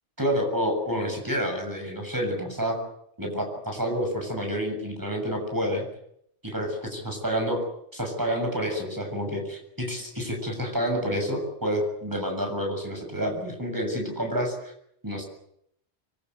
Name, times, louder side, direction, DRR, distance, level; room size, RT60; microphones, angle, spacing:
voice 1, 0.2-2.8 3.2-5.9 6.4-7.6 7.9-14.7 15.0-15.2, equal, 15° right, 3 dB, 7.1 m, -29 dB
25.5 x 23.0 x 8.1 m, 0.74 s
omnidirectional pair, 1.1 m